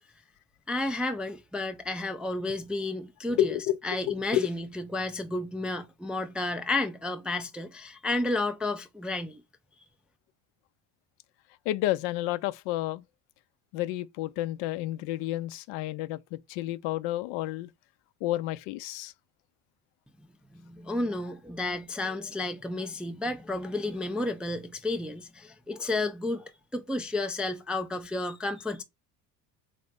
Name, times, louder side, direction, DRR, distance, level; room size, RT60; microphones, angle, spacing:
voice 1, 0.7-3.5 3.8-9.4 20.5-28.8, left 2 dB, ahead, 0.3 m, -32 dB
voice 2, 3.4-3.8 4.1-4.5 11.7-13.0 13.7-17.7 18.2-19.1, left 14 dB, 65° left, 0.5 m, -30 dB
4.0 x 3.3 x 3.5 m
hypercardioid pair, 65°, 48 cm